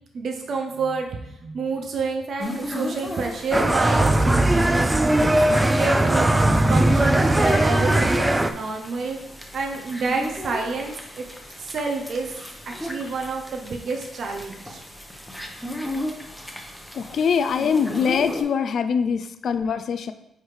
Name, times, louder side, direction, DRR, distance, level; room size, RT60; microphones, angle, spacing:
voice 1, 0.1-9.2 9.5-11.3 11.6-12.4 12.7-14.8, right 4 dB, 60° right, 2 dB, 0.6 m, -29 dB
sound 1, 2.4-18.4, equal, ahead, 0.9 m, -35 dB
sound 2, 3.5-8.5, right 1 dB, 15° right, 0.4 m, -19 dB
voice 2, 16.9-20.1, left 6 dB, 60° left, 10 dB, 0.3 m, -23 dB
9.4 x 3.4 x 3.2 m, 0.85 s
cardioid pair, 100°, 0 cm